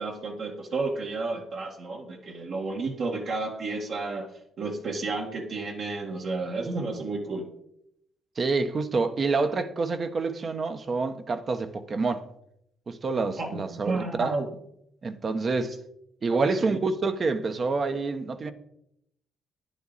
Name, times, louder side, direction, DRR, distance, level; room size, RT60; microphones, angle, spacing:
voice 1, 0.0-7.5 13.4-14.5 16.3-16.8, right 3 dB, 60° right, 1.8 m, -31 dB
voice 2, 8.4-12.2 12.9-14.3 15.0-15.7 16.2-18.5, right 4 dB, 40° right, 1.0 m, -27 dB
10.5 x 10.0 x 4.2 m
cardioid pair, 90°, 0 cm